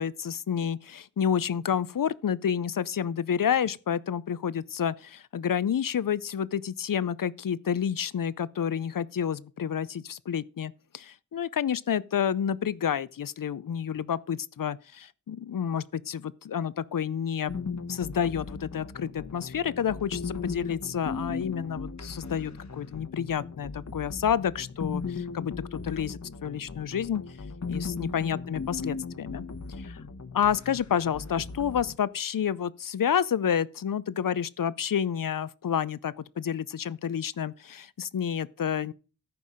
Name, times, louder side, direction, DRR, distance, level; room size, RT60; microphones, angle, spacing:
voice 1, 0.0-17.5 17.9-27.2 27.7-29.4 29.8-30.0 30.3-38.9, left 8 dB, 85° left, 0.6 m, -29 dB
sound 1, 17.5-32.0, left 4 dB, 60° left, 1.1 m, -37 dB
14.0 x 5.5 x 5.0 m
wide cardioid pair, 75°, 32 cm